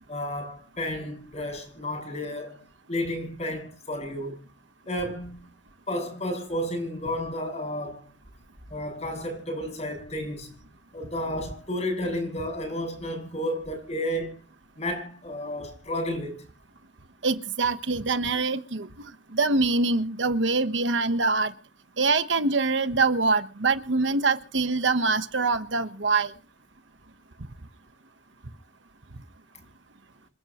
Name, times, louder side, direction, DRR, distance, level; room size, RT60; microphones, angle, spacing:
voice 1, 0.1-2.6 2.9-4.4 4.9-5.4 5.9-8.1 8.7-10.5 10.9-14.4 14.8-16.4, left 1 dB, 40° left, 7.5 m, -32 dB
voice 2, 17.2-21.5 22.0-26.3, right 3 dB, 85° right, 1.2 m, -24 dB
27.5 x 12.0 x 3.1 m
head